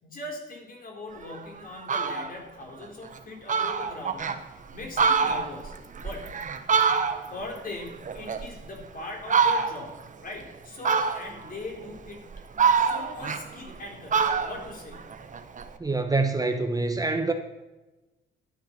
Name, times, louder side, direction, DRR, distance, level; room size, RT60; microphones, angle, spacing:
voice 1, 0.0-4.4 4.7-6.3 7.3-9.9 10.2-12.2 12.8-15.0, left 2 dB, 45° left, 1 dB, 4.0 m, -40 dB
Fowl, 1.3-1.4 1.7-2.3 2.8-2.9 3.2-3.3 3.5-4.4 4.8-7.5 7.8-8.8 9.3-10.0 10.8-11.5 12.1-13.8 14.1-15.7, right 5 dB, 40° right, 1.2 m, -25 dB
voice 2, 15.8-17.3, right 3 dB, 20° right, 5 dB, 1.1 m, -25 dB
12.0 x 8.9 x 5.9 m, 1.1 s
cardioid pair, 90°, 20 cm